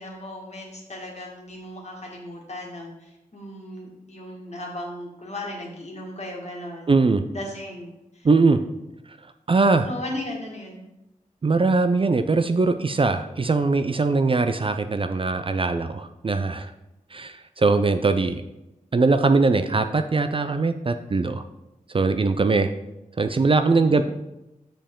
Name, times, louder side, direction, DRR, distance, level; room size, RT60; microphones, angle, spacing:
voice 1, 0.0-6.9 7.3-8.3 9.9-10.9 23.8-24.0, left 1 dB, 50° left, -1 dB, 1.8 m, -36 dB
voice 2, 6.9-7.2 8.2-8.6 9.5-9.9 11.4-16.7 17.1-18.4 18.9-21.4 21.9-22.7 23.2-24.0, right 3 dB, 40° right, 8 dB, 0.4 m, -21 dB
6.7 x 5.2 x 3.7 m, 0.93 s
cardioid pair, 50°, 15 cm